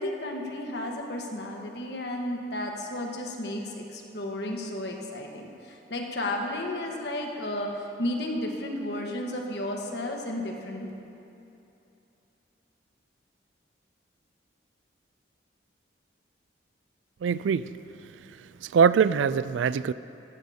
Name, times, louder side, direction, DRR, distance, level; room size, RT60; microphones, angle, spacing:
voice 1, 0.0-10.9, left 1 dB, 65° left, 1 dB, 1.3 m, -33 dB
voice 2, 17.2-17.7 18.6-19.9, right 6 dB, 85° right, 16 dB, 0.3 m, -22 dB
15.0 x 14.0 x 2.8 m, 2.8 s
head